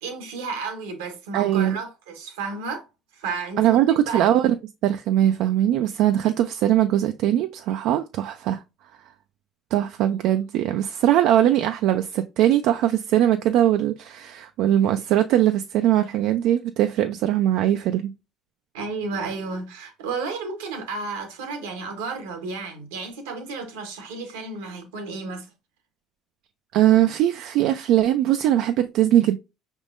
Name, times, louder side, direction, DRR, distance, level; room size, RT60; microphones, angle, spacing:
voice 1, 0.0-2.9 3.1-4.2 18.7-25.5, right 4 dB, 90° right, 1.0 m, -32 dB
voice 2, 1.3-1.8 3.6-4.5 4.8-8.6 9.7-18.1 26.7-29.4, right 12 dB, 70° right, 0.3 m, -21 dB
5.2 x 3.6 x 2.5 m
supercardioid pair, 75°, 0 cm